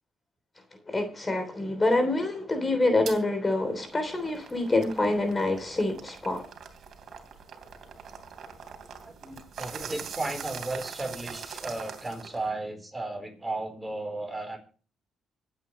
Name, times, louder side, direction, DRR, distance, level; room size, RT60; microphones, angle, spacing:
voice 1, 0.9-6.4, left 2 dB, 25° left, 3.3 m, -26 dB
sound 1, 3.1-3.2 3.7-12.5, right 6 dB, 60° right, 3.1 m, -42 dB
voice 2, 9.0-14.6, right 2 dB, 15° right, 4.1 m, -35 dB
24.5 x 9.1 x 3.2 m
cardioid pair, 90°, 0 cm